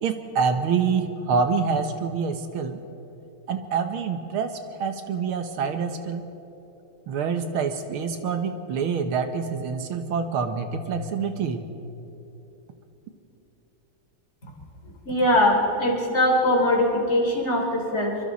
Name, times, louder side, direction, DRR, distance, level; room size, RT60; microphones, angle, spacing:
voice 1, 0.0-2.8 3.5-4.5 4.8-6.3 7.1-11.7, right 5 dB, 80° right, 7 dB, 2.1 m, -26 dB
voice 2, 15.1-18.2, left 1 dB, 30° left, -1 dB, 3.6 m, -21 dB
26.5 x 24.5 x 4.2 m, 3.0 s
omnidirectional pair, 2.3 m